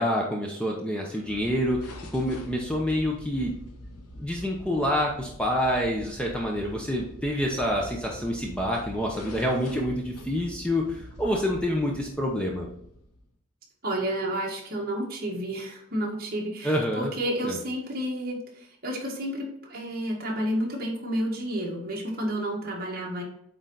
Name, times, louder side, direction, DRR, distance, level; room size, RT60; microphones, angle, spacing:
voice 1, 0.0-3.5 4.2-12.7 16.6-17.1 17.4-17.6, equal, 5° left, -1 dB, 0.8 m, -27 dB
sound 1, 1.2-13.4, equal, 90° left, 1.1 m, -44 dB
voice 2, 13.8-23.2, right 1 dB, 40° right, -1 dB, 1.8 m, -31 dB
8.7 x 3.9 x 3.9 m, 0.75 s
head